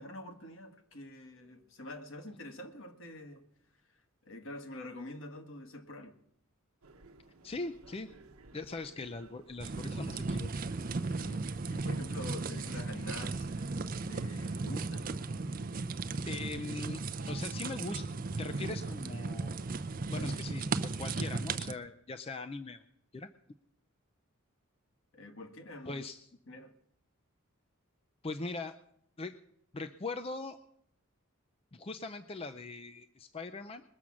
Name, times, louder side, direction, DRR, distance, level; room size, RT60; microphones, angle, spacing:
voice 1, 0.0-3.4 4.3-6.1 11.1-13.5 14.1-15.1 20.1-20.3 20.6-20.7 25.1-26.0 26.5-26.7, left 1 dB, 65° left, 5 dB, 1.6 m, -46 dB
sound 1, 6.8-20.3, right 3 dB, 80° right, 0.9 m, -56 dB
voice 2, 7.4-8.1 8.5-10.7 14.3-14.6 16.3-17.0 17.3-18.1 18.4-19.6 20.1-22.8 23.1-23.3 25.9-26.3 28.2-28.8 29.2-29.4 29.7-30.6 31.7-33.8, left 3 dB, 25° left, 8 dB, 0.4 m, -41 dB
sound 2, 9.6-21.7, right 3 dB, 40° right, 0.5 m, -36 dB
21.0 x 7.2 x 6.2 m, 0.71 s
head